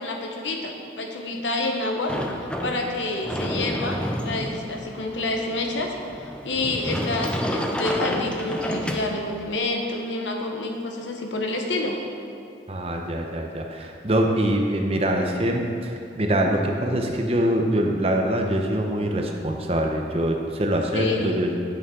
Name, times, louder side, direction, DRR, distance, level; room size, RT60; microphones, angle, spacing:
voice 1, 0.0-2.1 2.6-5.9 6.4-12.0 20.9-21.3, left 2 dB, 90° left, 2 dB, 1.0 m, -28 dB
Sliding door, 2.1-9.6, equal, 5° left, 0.4 m, -30 dB
voice 2, 12.7-21.5, right 1 dB, 35° right, 2 dB, 0.7 m, -24 dB
9.4 x 8.3 x 3.8 m, 2.6 s
head